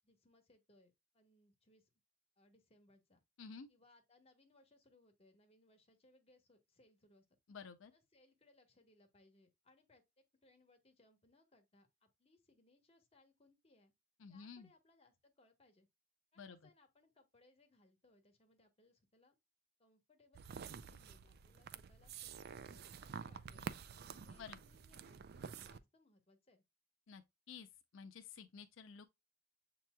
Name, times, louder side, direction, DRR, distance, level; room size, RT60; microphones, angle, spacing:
voice 1, 0.0-1.9 2.4-3.2 3.7-7.3 7.9-10.0 10.4-13.9 14.3-15.9 16.3-19.4 19.8-23.7 24.2-26.6, left 2 dB, 30° left, 1.3 m, -70 dB
voice 2, 7.5-7.9 14.2-14.7 16.4-16.6 24.4-24.6 27.1-27.2 27.5-27.7 27.9-29.1, left 5 dB, 85° left, 0.5 m, -52 dB
sound 1, 20.3-25.8, right 6 dB, 55° right, 0.4 m, -49 dB
7.5 x 2.9 x 2.2 m
head